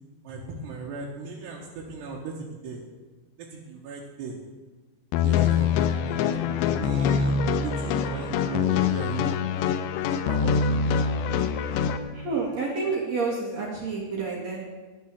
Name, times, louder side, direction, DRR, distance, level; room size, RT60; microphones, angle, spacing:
voice 1, 0.3-2.8 3.4-4.4 5.2-6.4 6.8-9.3 10.3-10.8, right 4 dB, 75° right, -3 dB, 3.5 m, -37 dB
sound 1, 5.1-12.0, left 7 dB, 85° left, 3.0 m, -24 dB
sound 2, 7.3-13.8, left 13 dB, 65° left, 2.0 m, -48 dB
voice 2, 12.1-14.6, right 4 dB, 45° right, -3 dB, 3.0 m, -29 dB
10.5 x 10.5 x 7.6 m, 1.3 s
omnidirectional pair, 5.0 m